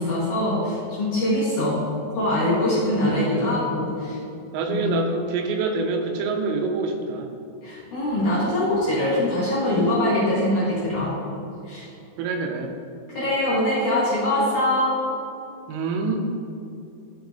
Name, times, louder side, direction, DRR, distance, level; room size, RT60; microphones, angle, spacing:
voice 1, 0.0-1.8 2.1-4.2 4.7-5.0 7.6-11.2 11.7-11.9 13.1-15.0, left 1 dB, 55° left, -9 dB, 2.3 m, -23 dB
voice 2, 3.1-3.5 4.5-7.3 12.2-12.7 15.7-16.3, right 4 dB, 85° right, 3 dB, 3.3 m, -26 dB
11.5 x 7.1 x 2.7 m, 2.7 s
omnidirectional pair, 5.6 m